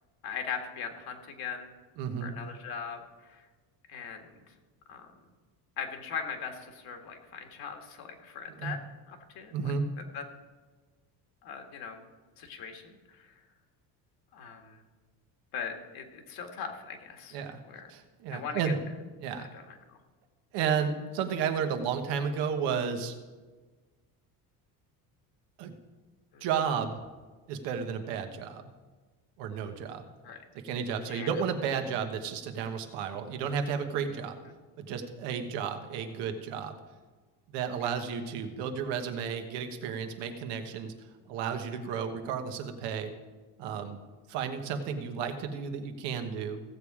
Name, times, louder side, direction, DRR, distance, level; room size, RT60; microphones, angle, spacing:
voice 1, 0.2-1.7 2.2-3.4 3.9-4.4 4.9-5.1 5.8-8.8 9.1-10.2 11.4-12.0 12.4-13.4 14.3-14.8 15.5-17.4 17.7-17.9 18.3-18.7 19.4-20.0 26.3-26.5 30.2-30.4 31.1-31.3 37.8-38.0 41.9-42.0, left 6 dB, 60° left, 4 dB, 1.7 m, -40 dB
voice 2, 2.0-2.4 8.6-8.8 9.5-9.9 17.3-17.6 17.9-18.8 19.2-19.5 20.5-23.1 25.6-25.7 26.4-27.0 27.5-28.7 29.4-30.1 30.5-34.4 34.8-36.8 37.5-40.9 41.3-43.1 43.6-44.0 44.3-46.6, right 7 dB, 85° right, 6 dB, 1.3 m, -32 dB
16.0 x 7.2 x 4.8 m, 1.3 s
cardioid pair, 145°, 41 cm